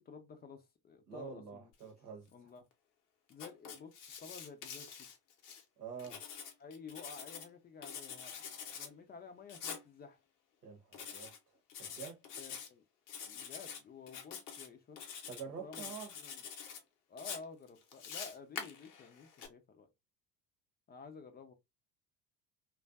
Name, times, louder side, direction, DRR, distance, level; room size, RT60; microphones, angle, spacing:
voice 1, 0.0-1.7 2.3-2.6 3.3-3.9 4.2-5.1 6.6-10.2 12.4-12.8 13.2-15.0 15.6-16.4 17.1-19.9 20.9-21.5, left 5 dB, 20° left, 0.4 m, -52 dB
voice 2, 1.1-2.5 5.8-6.2 10.6-12.2 15.3-16.1, right 6 dB, 90° right, 0.8 m, -47 dB
Writing, 3.3-5.6 6.0-7.5 7.8-8.9 9.5-9.8 10.9-11.4 11.7-12.7 13.1-13.8 14.1-14.7 15.0-15.4 15.7-16.8 17.2-19.5, left 7 dB, 75° left, 0.8 m, -46 dB
2.5 x 2.2 x 2.2 m
hypercardioid pair, 70°, 47 cm